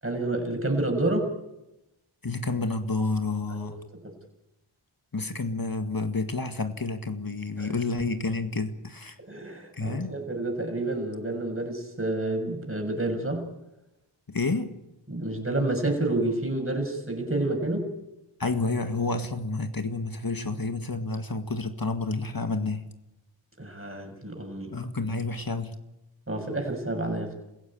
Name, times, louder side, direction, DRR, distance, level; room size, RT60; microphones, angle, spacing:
voice 1, 0.0-1.3 3.5-4.2 7.6-7.8 9.2-13.5 15.1-17.9 23.6-24.7 26.3-27.3, right 2 dB, 25° right, 3 dB, 6.8 m, -29 dB
voice 2, 2.2-3.8 5.1-9.2 9.8-10.1 14.3-14.7 18.4-22.9 24.7-25.8, left 3 dB, 45° left, 7 dB, 1.9 m, -29 dB
28.0 x 16.0 x 8.8 m, 0.92 s
wide cardioid pair, 45°, 50 cm